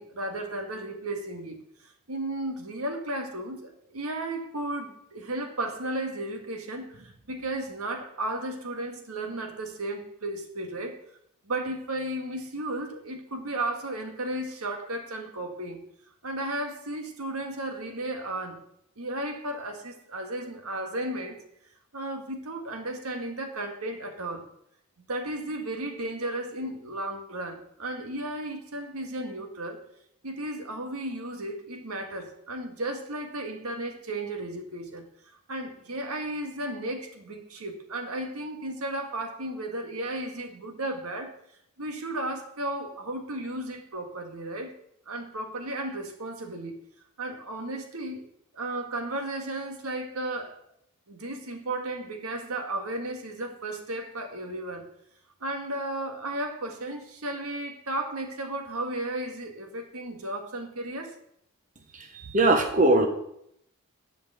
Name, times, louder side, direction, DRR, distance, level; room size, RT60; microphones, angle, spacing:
voice 1, 0.0-1.6 1.8-11.0 11.5-15.8 16.2-18.6 19.0-21.4 21.9-24.4 25.1-29.8 30.2-35.0 35.5-41.3 41.8-44.7 45.1-46.8 47.2-48.2 48.5-50.6 51.1-54.9 55.4-61.1, right 1 dB, 85° right, 4 dB, 1.7 m, -34 dB
voice 2, 62.3-63.1, right 2 dB, 35° right, 4 dB, 1.2 m, -20 dB
11.0 x 5.1 x 8.0 m, 0.74 s
head